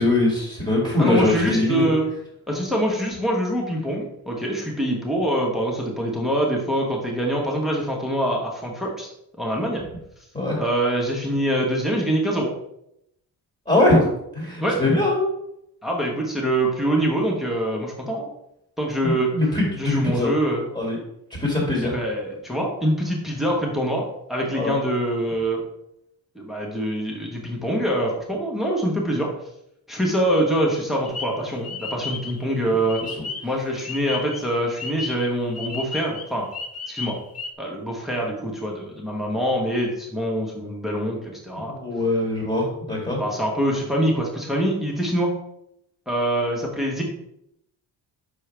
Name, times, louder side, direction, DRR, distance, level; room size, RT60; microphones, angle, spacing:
voice 1, 0.0-1.9 10.3-10.6 13.7-15.2 19.0-20.3 20.7-21.0 21.4-22.0 24.5-24.7 33.0-33.3 41.6-43.2, left 2 dB, 20° left, -3 dB, 2.0 m, -22 dB
voice 2, 1.0-2.1 2.5-9.1 9.4-9.8 10.6-12.5 14.6-14.8 15.8-18.3 18.8-19.3 19.8-20.6 21.8-24.0 24.3-25.6 26.3-29.3 29.9-33.0 33.4-36.5 36.9-37.2 37.6-41.7 43.2-45.3 46.1-47.0, right 1 dB, ahead, -2 dB, 1.3 m, -24 dB
sound 1, 31.1-33.5 33.8-37.5, left 4 dB, 40° left, 0.7 m, -34 dB
6.1 x 4.5 x 3.4 m, 0.78 s
cardioid pair, 100°, 40 cm